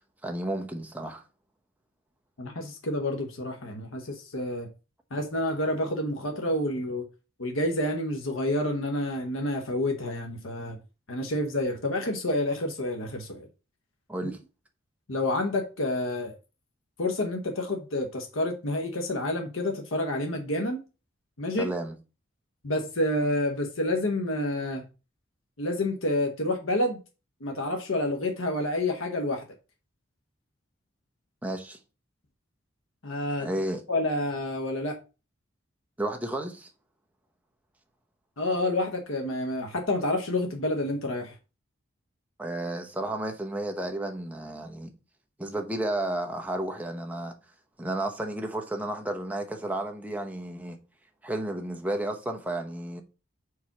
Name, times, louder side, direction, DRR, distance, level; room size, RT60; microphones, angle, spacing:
voice 1, 0.2-1.2 14.1-14.4 21.6-21.9 31.4-31.8 33.4-33.8 36.0-36.7 42.4-44.9 45.4-47.3 47.8-50.8 51.2-53.0, right 1 dB, 5° right, 0.8 m, -32 dB
voice 2, 2.4-4.7 5.1-7.0 7.4-10.8 11.1-13.5 14.2-14.3 15.1-16.3 17.0-20.8 21.4-21.7 22.6-24.8 25.6-27.0 27.4-29.4 33.0-33.5 33.9-35.0 38.4-41.3, left 1 dB, 85° left, 1.0 m, -29 dB
4.8 x 4.2 x 5.9 m
head